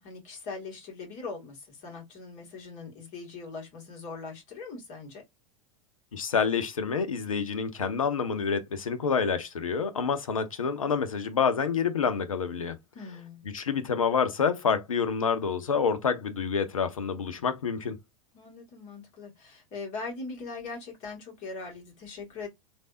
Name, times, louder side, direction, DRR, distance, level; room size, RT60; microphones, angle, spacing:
voice 1, 0.0-5.2 12.9-13.4 18.3-22.5, left 4 dB, 45° left, 2.0 m, -41 dB
voice 2, 6.1-12.8 13.5-18.0, left 6 dB, 80° left, 0.7 m, -28 dB
3.3 x 2.7 x 2.4 m
figure-of-eight pair, 90°, 17 cm